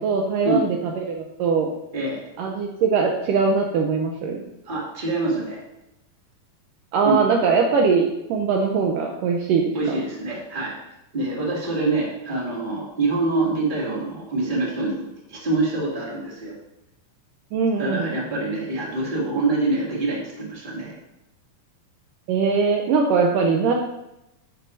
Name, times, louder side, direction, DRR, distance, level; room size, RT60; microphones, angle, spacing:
voice 1, 0.0-1.7 2.4-4.4 6.9-10.0 17.5-18.1 22.3-23.7, right 5 dB, 75° right, 2 dB, 2.1 m, -21 dB
voice 2, 4.6-5.6 7.0-7.2 9.7-10.8 11.1-16.5 17.8-20.9, right 2 dB, 15° right, -4 dB, 1.9 m, -25 dB
10.5 x 10.0 x 2.7 m, 0.89 s
omnidirectional pair, 4.3 m